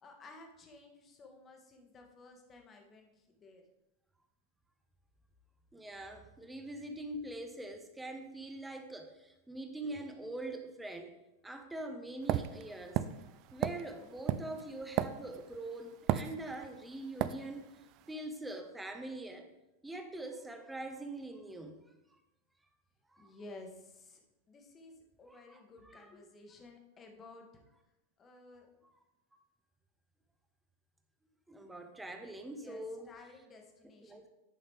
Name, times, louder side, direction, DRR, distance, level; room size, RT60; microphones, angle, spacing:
voice 1, 0.0-3.6 23.2-24.2 24.5-27.6 28.2-28.7 32.5-34.3, left 2 dB, 25° left, 2 dB, 1.4 m, -54 dB
voice 2, 5.7-11.1 11.4-13.0 13.5-17.7 18.1-19.5 19.8-21.8 23.2-23.3 25.3-26.1 29.3-29.4 31.5-33.1 34.0-34.2, right 1 dB, 5° right, 6 dB, 0.9 m, -43 dB
sound 1, 12.3-15.6 16.1-16.8 17.2-17.4, right 13 dB, 40° right, 0.3 m, -33 dB
10.5 x 5.7 x 3.5 m, 0.95 s
figure-of-eight pair, 90°, 0 cm